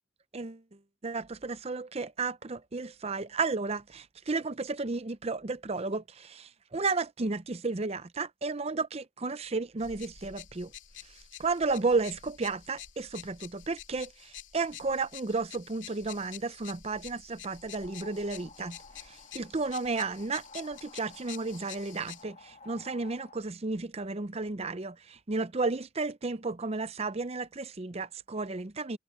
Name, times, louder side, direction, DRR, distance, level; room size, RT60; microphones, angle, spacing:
voice 1, 1.0-10.7 11.4-18.8 19.1-29.0, right 3 dB, 30° right, 0.6 m, -33 dB
sound 1, 9.8-22.2, left 10 dB, 70° left, 2.2 m, -48 dB
sound 2, 17.5-23.4, left 3 dB, 35° left, 1.5 m, -54 dB
head